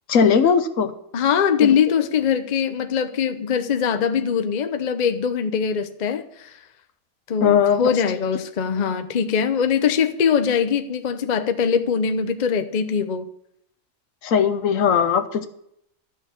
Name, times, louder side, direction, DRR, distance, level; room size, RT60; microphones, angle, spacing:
voice 1, 0.1-0.9 1.6-1.7 7.4-7.8 14.2-15.5, left 7 dB, 70° left, 1.2 m, -18 dB
voice 2, 1.1-6.6 7.3-13.3, left 7 dB, 40° left, 0.7 m, -22 dB
12.5 x 6.4 x 7.1 m
omnidirectional pair, 1.5 m